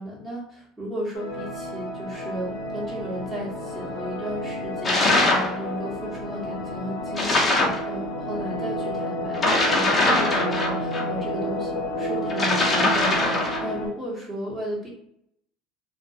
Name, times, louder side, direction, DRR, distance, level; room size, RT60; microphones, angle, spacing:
voice 1, 0.0-14.9, equal, 15° right, -6 dB, 1.1 m, -34 dB
sound 1, 1.1-13.9, left 1 dB, 75° left, 0.6 m, -31 dB
sound 2, 4.8-5.5 7.2-7.8 9.3-11.0 12.3-13.7, left 2 dB, 25° left, 0.7 m, -22 dB
2.4 x 2.2 x 2.7 m, 0.72 s
supercardioid pair, 100°, 0 cm